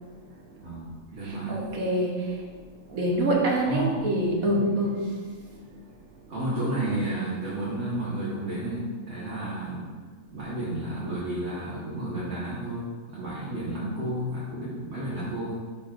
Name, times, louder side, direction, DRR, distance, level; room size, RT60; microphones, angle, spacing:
voice 1, 0.6-1.6 3.6-3.9 4.4-4.6 6.3-9.9 10.3-15.5, right 1 dB, 50° right, -9 dB, 1.6 m, -32 dB
voice 2, 1.2-2.5 2.9-5.3, right 1 dB, 75° right, -1 dB, 1.5 m, -26 dB
10.5 x 4.1 x 2.5 m, 1.5 s
omnidirectional pair, 1.5 m